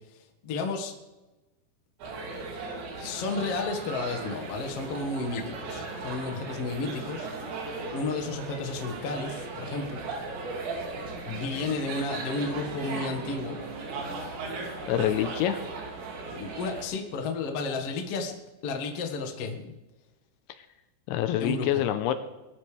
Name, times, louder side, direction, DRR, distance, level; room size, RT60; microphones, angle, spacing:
voice 1, 0.4-0.9 3.0-7.3 7.9-10.0 11.4-13.6 16.3-18.3 18.6-19.7 21.4-21.7, left 3 dB, 65° left, 3 dB, 1.4 m, -32 dB
sound 1, 2.0-16.8, right 3 dB, 65° right, 4.8 m, -37 dB
voice 2, 14.8-15.6 21.1-22.1, left 11 dB, 80° left, 10 dB, 3.0 m, -26 dB
22.0 x 12.5 x 3.4 m, 1.1 s
omnidirectional pair, 5.7 m